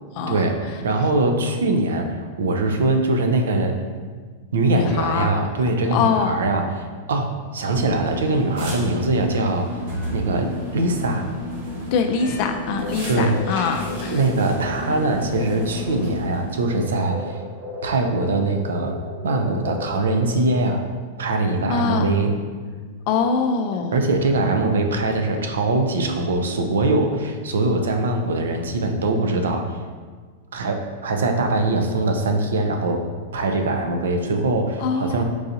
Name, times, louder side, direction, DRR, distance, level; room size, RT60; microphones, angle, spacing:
voice 1, 0.3-3.8 4.5-9.7 10.1-11.3 13.1-13.4 14.1-17.4 17.8-19.0 19.2-20.8 21.2-22.3 23.9-29.8 30.5-33.1 33.3-35.2, right 2 dB, 90° right, 5 dB, 0.4 m, -22 dB
voice 2, 4.7-5.4 5.9-6.4 11.9-14.2 21.7-22.1 23.1-24.0 34.8-35.2, left 5 dB, 50° left, 6 dB, 0.3 m, -23 dB
sound 1, 7.7-16.7, left 1 dB, 70° right, 1.3 m, -32 dB
sound 2, 12.3-20.7, left 1 dB, 45° right, 1.0 m, -36 dB
4.6 x 2.7 x 2.6 m, 1.5 s
hypercardioid pair, 130°, 0 cm